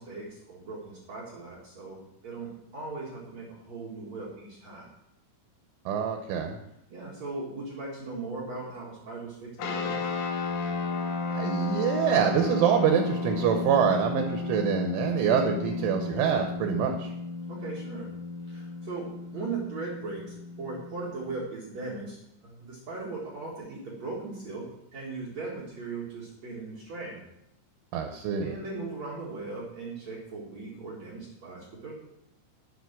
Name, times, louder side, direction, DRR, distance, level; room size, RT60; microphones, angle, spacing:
voice 1, 0.0-4.9 6.9-10.0 17.5-18.1 18.5-22.2 22.4-24.7 24.9-27.2 28.4-31.9, right 3 dB, 50° right, -4 dB, 2.1 m, -38 dB
voice 2, 5.9-6.6 11.3-17.1 27.9-28.6, right 7 dB, 75° right, 4 dB, 3.1 m, -25 dB
sound 1, 9.6-21.4, left 3 dB, 90° left, 4.1 m, -33 dB
12.0 x 7.8 x 6.0 m, 0.81 s
omnidirectional pair, 5.9 m